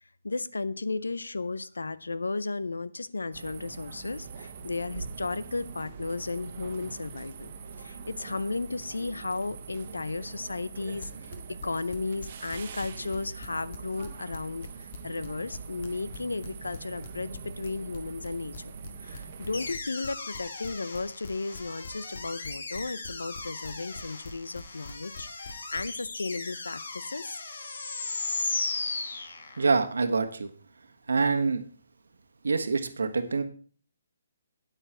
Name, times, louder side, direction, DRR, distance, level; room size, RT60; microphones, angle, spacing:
voice 1, 0.0-11.3 11.6-18.7 19.0-27.4, left 3 dB, 85° left, 16 dB, 0.6 m, -34 dB
sound 1, 3.3-19.7, right 5 dB, 45° right, 1.2 m, -43 dB
sound 2, 11.0-13.2 13.4-26.1, left 4 dB, 45° left, 1.9 m, -43 dB
sound 3, 19.5-29.8, left 3 dB, 70° left, 1.9 m, -37 dB
voice 2, 29.6-30.5 31.1-31.6 32.4-33.4, right 4 dB, 75° right, 8 dB, 1.2 m, -25 dB
9.1 x 8.8 x 4.4 m, 0.44 s
figure-of-eight pair, 145°, 0 cm